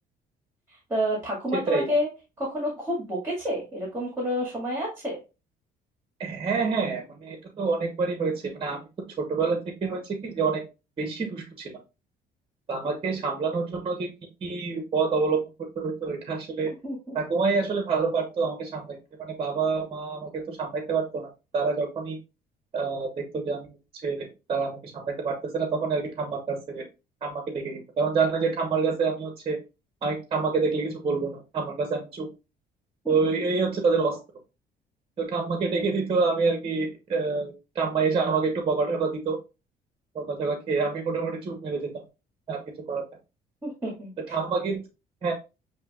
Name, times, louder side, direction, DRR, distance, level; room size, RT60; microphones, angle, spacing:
voice 1, 0.7-2.1 2.4-5.2 16.8-17.2 33.0-33.1 43.6-44.4, equal, 15° right, -2 dB, 1.9 m, -29 dB
voice 2, 1.5-1.9 6.2-8.8 9.2-10.6 11.0-11.8 12.7-14.1 14.4-15.4 15.8-16.7 17.1-22.2 22.7-23.1 23.3-23.7 24.0-26.8 27.2-29.6 30.0-32.3 33.1-34.2 35.2-39.4 40.1-41.9 42.5-42.6 42.9-43.0 44.3-44.8 45.2-45.3, right 4 dB, 30° right, 4 dB, 1.0 m, -27 dB
7.3 x 2.8 x 2.3 m, 0.29 s
cardioid pair, 110°, 17 cm